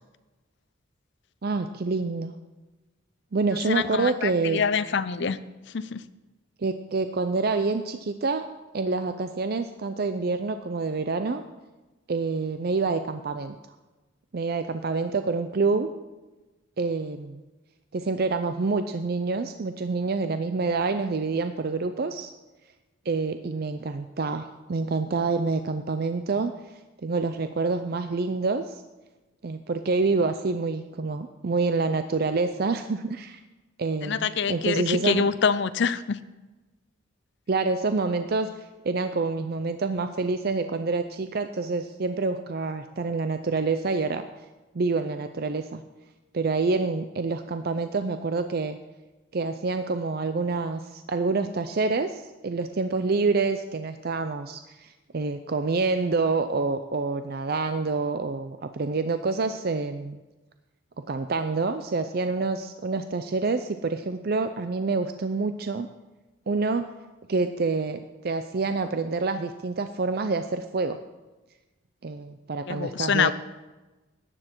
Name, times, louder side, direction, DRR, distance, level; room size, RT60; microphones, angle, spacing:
voice 1, 1.4-2.3 3.3-4.6 6.6-8.5 8.7-11.4 12.1-13.6 14.3-15.9 16.8-17.4 17.9-22.3 23.1-26.5 27.0-28.8 29.4-33.4 33.8-35.2 37.5-44.3 44.7-45.8 46.3-48.8 49.3-60.2 61.0-65.9 66.5-66.9 67.3-71.0 72.0-73.3, right 3 dB, 45° right, 9 dB, 0.5 m, -27 dB
voice 2, 3.7-5.4 5.7-6.0 34.0-36.2 72.7-73.3, left 6 dB, 55° left, 14 dB, 0.5 m, -25 dB
14.0 x 9.9 x 4.5 m, 1.1 s
head